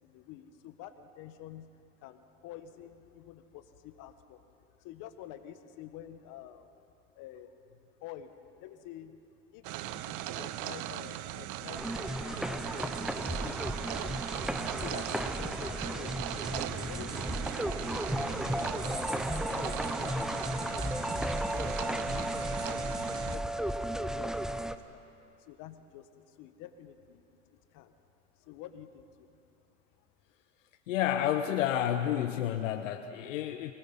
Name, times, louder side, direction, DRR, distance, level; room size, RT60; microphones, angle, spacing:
voice 1, 0.0-1.7 2.0-4.4 4.7-6.7 7.1-7.5 8.0-9.2 9.5-13.7 14.0-14.4 14.7-16.2 16.5-21.1 21.5-22.5 22.9-25.0 25.4-28.0 28.4-29.3 30.0-30.1, left 11 dB, 55° left, 9 dB, 1.7 m, -49 dB
sound 1, 9.6-23.4, right 14 dB, 50° right, 0.8 m, -39 dB
sound 2, 11.7-24.8, equal, ahead, 0.8 m, -34 dB
voice 2, 30.9-33.7, left 10 dB, 80° left, 7 dB, 1.0 m, -30 dB
25.0 x 19.5 x 5.6 m, 2.5 s
hypercardioid pair, 90°, 38 cm